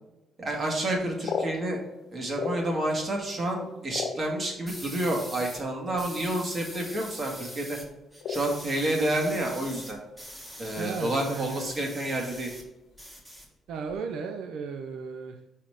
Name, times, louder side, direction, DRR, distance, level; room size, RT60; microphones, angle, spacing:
voice 1, 0.4-1.8 2.1-7.8 8.3-10.0 10.6-12.5, right 1 dB, 40° right, 0 dB, 2.0 m, -29 dB
sound 1, 0.9-3.0 3.4-4.8 5.6-5.7 6.0-6.3 6.6-7.0 7.3-7.5 8.2-9.2 9.5-10.4 10.6-10.7 11.1-11.4 11.9-12.3, left 5 dB, 70° left, 1.0 m, -35 dB
sound 2, 4.7-5.6 6.0-7.9 8.1-12.6 12.9-13.9, equal, 10° right, 1.6 m, -43 dB
voice 2, 10.8-11.7 13.7-15.5, right 5 dB, 85° right, 5 dB, 0.5 m, -35 dB
5.6 x 4.2 x 4.9 m, 1.0 s
cardioid pair, 90°, 0 cm